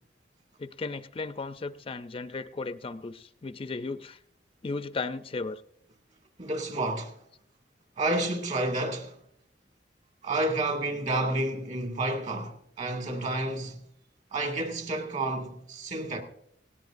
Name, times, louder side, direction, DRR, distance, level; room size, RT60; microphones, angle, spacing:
voice 1, 0.6-4.2 4.6-5.6, left 3 dB, 30° left, 0.4 m, -35 dB
voice 2, 6.4-7.2 8.0-9.2 10.2-13.8 14.3-16.2, right 2 dB, 40° right, 2.1 m, -30 dB
18.5 x 16.5 x 2.6 m
head